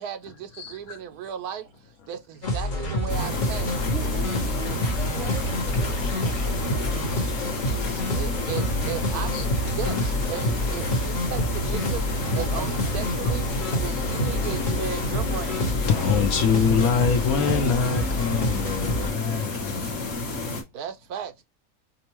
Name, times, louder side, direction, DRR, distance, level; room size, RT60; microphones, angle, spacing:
voice 1, 0.0-1.7 2.1-3.8 8.1-15.7 20.7-21.4, right 9 dB, 75° right, 1.2 m, -36 dB
voice 2, 0.6-1.0 7.1-8.2 9.3-9.4 15.3-15.5 15.9-20.1, left 6 dB, 70° left, 1.0 m, -26 dB
sound 1, 2.4-19.1, left 1 dB, 35° left, 1.1 m, -28 dB
sound 2, 3.1-20.6, left 2 dB, 55° left, 1.3 m, -31 dB
voice 3, 3.8-7.4 12.4-12.5, right 3 dB, 55° right, 1.3 m, -40 dB
5.2 x 2.1 x 3.0 m
omnidirectional pair, 1.7 m